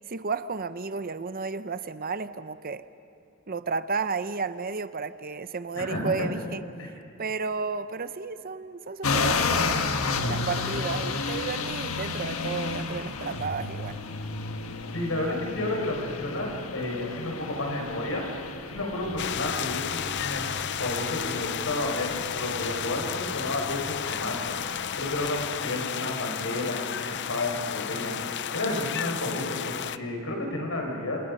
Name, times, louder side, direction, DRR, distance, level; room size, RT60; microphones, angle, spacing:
voice 1, 0.0-2.8 3.5-6.6 7.2-9.9 10.3-14.0, right 4 dB, 45° right, 12 dB, 0.7 m, -32 dB
voice 2, 5.7-6.3 6.8-6.9 14.9-18.2 18.7-20.5 20.8-28.1 28.5-31.2, left 1 dB, 70° left, 1 dB, 5.6 m, -31 dB
sound 1, 9.0-25.6, left 4 dB, 90° left, 1.4 m, -32 dB
sound 2, 19.2-30.0, left 9 dB, 55° left, 0.6 m, -32 dB
29.5 x 27.5 x 5.5 m, 2.9 s
head